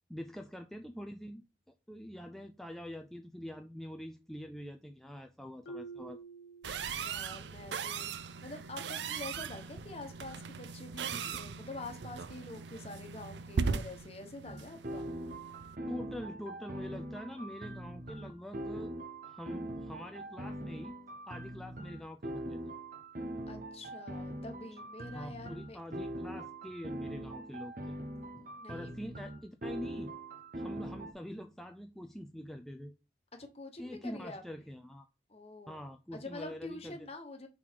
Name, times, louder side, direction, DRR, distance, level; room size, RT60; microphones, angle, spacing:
voice 1, 0.1-1.4 1.9-6.2 15.9-18.9 19.2-21.0 21.3-22.6 25.1-28.0 28.7-30.1 30.5-32.9 33.8-35.1 35.7-37.1, equal, ahead, 0.3 m, -45 dB
Marimba xylophone, 5.6-7.4, right 3 dB, 80° left, 0.6 m, -48 dB
sound 1, 6.6-15.8, right 5 dB, 70° right, 0.5 m, -39 dB
voice 2, 6.8-8.1 8.4-15.1 23.5-25.8 28.3-28.9 33.3-34.4 35.3-35.8 36.1-37.5, left 2 dB, 35° left, 1.2 m, -46 dB
sound 2, 14.4-31.1, right 1 dB, 50° right, 0.9 m, -42 dB
5.7 x 3.9 x 4.6 m
head